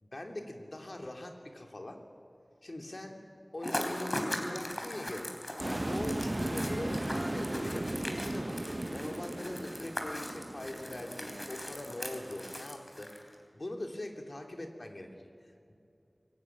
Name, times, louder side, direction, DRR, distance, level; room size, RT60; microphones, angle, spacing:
voice 1, 0.0-2.0 2.6-3.2 3.5-5.3 5.6-8.6 8.9-15.3, left 1 dB, 60° left, 3 dB, 2.8 m, -42 dB
sound 1, 3.6-13.4, left 1 dB, 35° left, 3.6 m, -40 dB
sound 2, 5.6-12.6, right 1 dB, 45° right, 0.7 m, -37 dB
sound 3, 6.1-10.7, equal, 15° right, 3.5 m, -48 dB
24.0 x 16.5 x 9.3 m, 2.6 s
wide cardioid pair, 50°, 0 cm